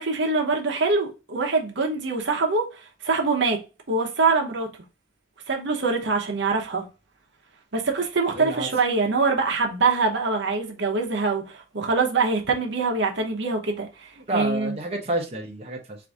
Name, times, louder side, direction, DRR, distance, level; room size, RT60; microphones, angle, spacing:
voice 1, 0.0-3.6 3.9-4.7 5.5-6.9 7.7-14.8, right 4 dB, 60° right, 0.9 m, -24 dB
voice 2, 8.3-8.7 14.3-16.0, right 1 dB, 30° right, 0.8 m, -29 dB
4.7 x 2.6 x 3.6 m
head